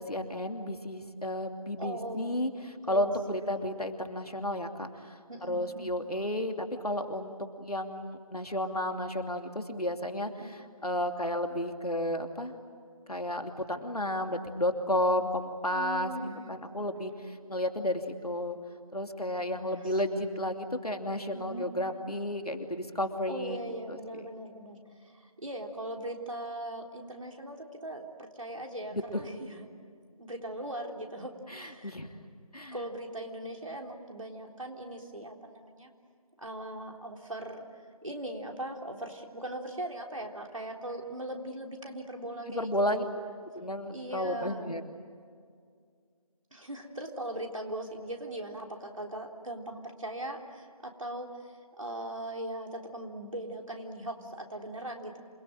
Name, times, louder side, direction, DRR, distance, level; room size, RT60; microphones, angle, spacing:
voice 1, 0.0-7.3 7.6-12.5 13.1-16.1 16.5-18.6 18.9-23.6 23.9-24.2 28.9-29.2 31.5-32.1 32.5-32.8 42.5-43.0 43.5-44.8, left 1 dB, 85° left, 5 dB, 2.8 m, -32 dB
voice 2, 1.8-2.6 2.9-3.7 5.3-5.9 10.4-10.5 15.7-16.5 17.0-17.1 19.5-20.3 21.3-21.6 23.3-29.7 30.2-32.0 32.7-35.9 36.4-43.2 43.9-44.7 46.5-55.2, right 1 dB, 60° right, 2 dB, 3.7 m, -40 dB
27.5 x 21.5 x 9.0 m, 2.1 s
figure-of-eight pair, 170°, 19 cm